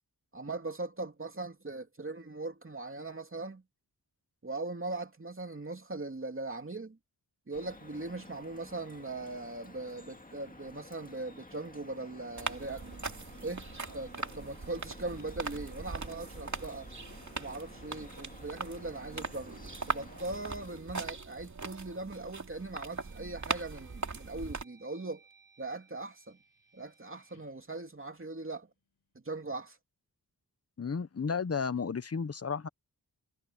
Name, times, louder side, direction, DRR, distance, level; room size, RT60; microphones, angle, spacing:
voice 1, 0.3-3.6 4.4-7.0 7.5-12.8 13.4-13.6 13.9-16.9 17.4-19.5 19.9-25.2 25.6-26.4 26.7-28.7 29.1-29.8, right 2 dB, 35° right, 2.8 m, -40 dB
Drip, 7.5-20.8, left 2 dB, 20° left, 2.0 m, -53 dB
sound 1, 12.4-24.6, right 4 dB, 50° right, 2.7 m, -40 dB
sound 2, 22.6-28.7, right 4 dB, 85° left, 4.2 m, -64 dB
voice 2, 30.8-32.7, left 5 dB, 40° left, 0.8 m, -33 dB
wide cardioid pair, 95°, 37 cm